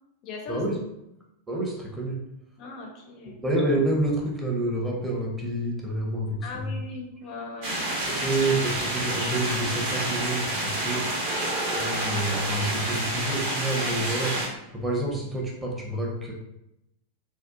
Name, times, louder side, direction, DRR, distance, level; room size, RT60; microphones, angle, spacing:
voice 1, 0.2-0.6 2.6-3.4 6.4-7.8 10.8-11.3, left 3 dB, 40° left, 1 dB, 0.4 m, -39 dB
voice 2, 1.5-2.2 3.3-6.7 8.1-11.0 11.8-16.3, right 1 dB, 10° right, -2 dB, 0.6 m, -28 dB
sound 1, 7.6-14.5, right 1 dB, 50° right, 0.8 m, -28 dB
2.7 x 2.0 x 2.4 m, 0.85 s
figure-of-eight pair, 90°, 0 cm